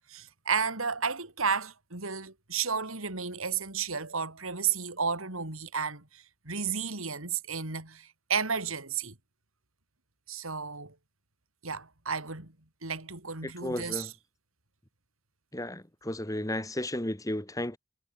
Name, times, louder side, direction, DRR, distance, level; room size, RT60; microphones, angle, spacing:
voice 1, 0.1-9.1 10.3-10.9 11.6-12.5 12.8-14.1, right 6 dB, 85° right, 4.4 m, -32 dB
voice 2, 13.4-14.1 15.5-17.8, left 1 dB, 15° left, 2.1 m, -34 dB
head